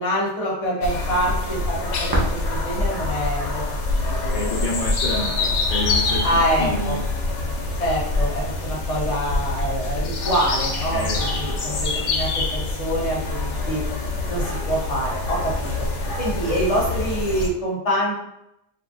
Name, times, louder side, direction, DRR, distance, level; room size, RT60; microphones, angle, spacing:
voice 1, 0.0-3.6 3.9-4.7 6.2-7.0 7.7-13.8 14.3-15.7 16.2-18.1, equal, 35° left, -5 dB, 1.0 m, -26 dB
sound 1, 0.8-17.5, left 2 dB, 80° left, 0.9 m, -25 dB
sound 2, 1.5-8.2, right 1 dB, 30° right, 0.4 m, -35 dB
voice 2, 4.3-7.1 10.9-12.1, left 2 dB, 55° left, -5 dB, 0.6 m, -30 dB
2.5 x 2.2 x 3.8 m, 0.81 s
omnidirectional pair, 1.2 m